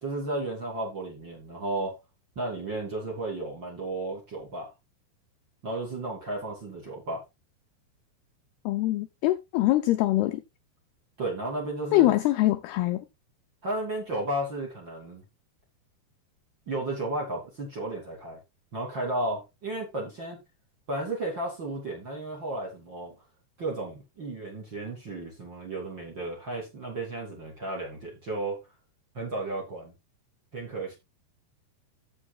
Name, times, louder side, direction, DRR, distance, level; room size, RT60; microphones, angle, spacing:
voice 1, 0.0-2.0 2.4-4.7 5.6-7.2 11.2-12.1 13.6-15.2 16.7-18.4 18.7-20.4 20.9-23.1 23.6-28.6 29.1-29.9 30.5-30.9, right 2 dB, 30° right, 2.6 m, -33 dB
voice 2, 8.7-10.4 11.9-13.1, left 16 dB, 85° left, 2.2 m, -23 dB
14.0 x 7.3 x 2.3 m
omnidirectional pair, 5.3 m